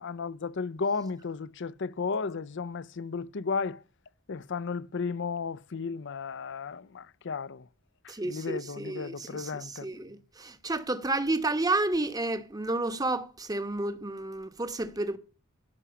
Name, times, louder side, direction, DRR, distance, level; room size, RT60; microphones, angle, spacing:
voice 1, 0.0-3.8 4.3-7.7 8.2-9.9, left 5 dB, 60° left, 0.6 m, -34 dB
voice 2, 8.1-15.2, right 2 dB, 20° right, 1.0 m, -31 dB
15.5 x 6.2 x 6.9 m
head